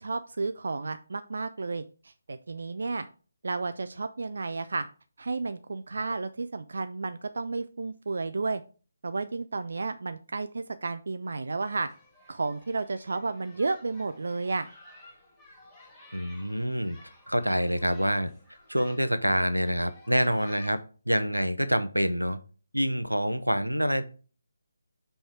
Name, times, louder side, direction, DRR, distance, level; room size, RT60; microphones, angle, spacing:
voice 1, 0.0-3.1 3.4-4.8 5.2-8.6 9.0-11.9 12.3-14.7, right 3 dB, 55° right, 10 dB, 0.4 m, -32 dB
sound 1, 11.6-20.8, left 1 dB, 10° left, 2.5 m, -54 dB
voice 2, 16.1-17.0 17.3-18.3 18.7-20.8 21.1-22.4 22.7-24.0, equal, 90° right, 11 dB, 0.7 m, -26 dB
5.6 x 4.2 x 4.5 m, 0.38 s
figure-of-eight pair, 150°, 0 cm